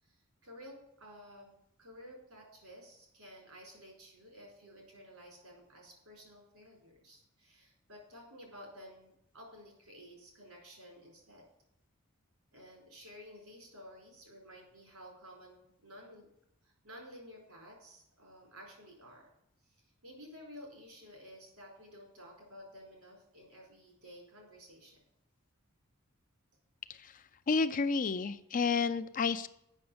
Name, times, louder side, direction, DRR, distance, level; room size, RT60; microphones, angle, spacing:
voice 1, 0.0-11.4 12.5-16.3 16.6-19.3 19.6-25.0, equal, 80° right, 0 dB, 4.5 m, -53 dB
voice 2, 27.5-29.5, left 4 dB, 40° left, 11 dB, 0.5 m, -30 dB
8.1 x 6.1 x 7.8 m, 0.80 s
head